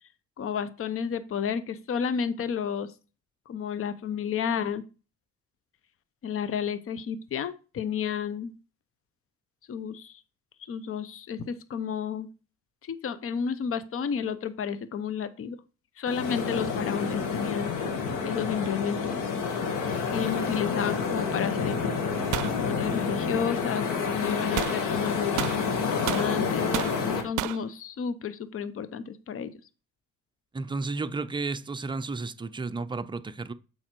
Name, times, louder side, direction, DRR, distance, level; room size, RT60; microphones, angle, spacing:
voice 1, 0.4-2.9 3.5-4.8 6.2-8.5 9.7-10.2 10.7-12.3 12.9-15.6 16.0-17.7 18.2-19.2 20.1-21.8 22.5-29.5, left 7 dB, 45° left, 0.7 m, -31 dB
sound 1, 16.1-27.2, left 5 dB, 85° left, 1.6 m, -29 dB
sound 2, 22.3-22.6 24.6-24.8 25.4-26.3 26.7-27.0 27.4-27.6, right 16 dB, 85° right, 0.5 m, -31 dB
voice 2, 30.5-33.5, right 3 dB, 15° right, 0.6 m, -32 dB
7.1 x 5.0 x 4.5 m
cardioid pair, 90°, 30 cm